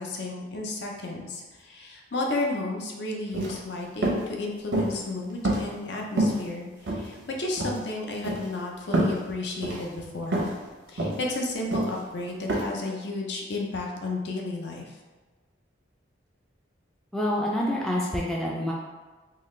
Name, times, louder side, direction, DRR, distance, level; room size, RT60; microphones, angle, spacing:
voice 1, 0.0-10.5 10.9-15.0, left 2 dB, 60° left, 0 dB, 0.6 m, -33 dB
sound 1, 3.3-3.6 4.0-4.2 4.7-5.0 5.4-5.9 6.2-6.4 6.9-7.3 7.6-7.8 8.2-8.5 8.9-9.2 9.6-9.8 10.3-10.6 11.0-11.2 11.7-12.0 12.5-12.6, right 1 dB, 80° right, 0.8 m, -26 dB
voice 2, 17.1-18.7, left 1 dB, ahead, -4 dB, 0.3 m, -27 dB
3.7 x 2.4 x 3.1 m, 1.3 s
head